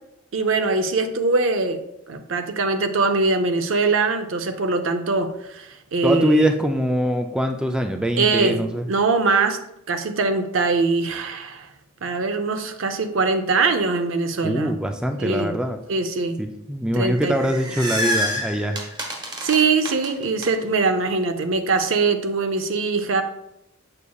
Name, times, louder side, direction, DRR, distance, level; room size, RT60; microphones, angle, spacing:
voice 1, 0.3-1.8 2.1-6.4 8.2-9.6 9.9-11.7 12.0-14.8 15.2-15.5 15.9-16.4 16.9-17.4 19.4-23.2, right 3 dB, 70° right, 8 dB, 0.6 m, -22 dB
voice 2, 6.0-8.9 14.4-15.8 16.4-18.8, equal, 5° right, 5 dB, 0.3 m, -23 dB
sound 1, 17.2-20.5, equal, 20° right, 1.0 m, -27 dB
7.0 x 6.6 x 2.3 m, 0.84 s
head